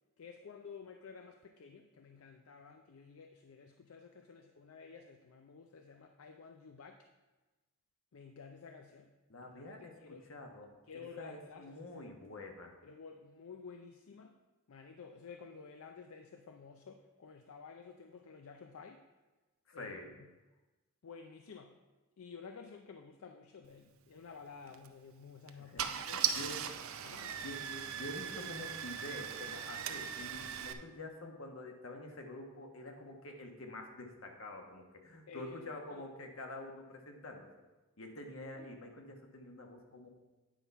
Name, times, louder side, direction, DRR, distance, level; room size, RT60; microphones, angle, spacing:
voice 1, 0.2-7.0 8.1-9.1 9.4-10.2 10.9-11.9 12.8-14.3 14.7-19.0 19.7-19.9 20.2-20.3 21.0-21.8 22.2-26.5 27.0-27.4 35.3-36.1 38.5-38.7, left 5 dB, 85° left, 6 dB, 0.5 m, -52 dB
voice 2, 9.3-10.8 11.2-12.7 19.7-20.1 25.6-26.7 27.4-37.5 38.0-40.1, left 2 dB, 70° left, 3 dB, 1.2 m, -47 dB
Car / Engine starting, 24.7-24.9 25.5-25.6 25.8-30.7, right 9 dB, 75° right, 0.5 m, -38 dB
9.1 x 5.6 x 4.5 m, 1.2 s
head